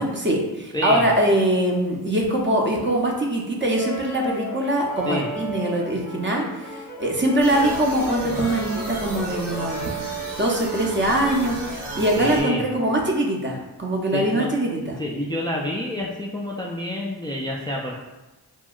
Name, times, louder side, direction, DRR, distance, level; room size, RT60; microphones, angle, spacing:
voice 1, 0.0-9.8 10.3-15.0, right 1 dB, 30° right, -1 dB, 0.6 m, -23 dB
voice 2, 0.7-1.1 5.0-5.3 12.2-12.6 14.1-14.5 15.0-18.0, left 1 dB, 10° left, -3 dB, 0.3 m, -28 dB
Brass instrument, 3.7-12.3, right 1 dB, 45° right, 1.3 m, -35 dB
sound 1, 7.4-12.4, right 2 dB, 85° right, 0.8 m, -34 dB
2.9 x 2.6 x 2.4 m, 1.1 s
cardioid pair, 45°, 41 cm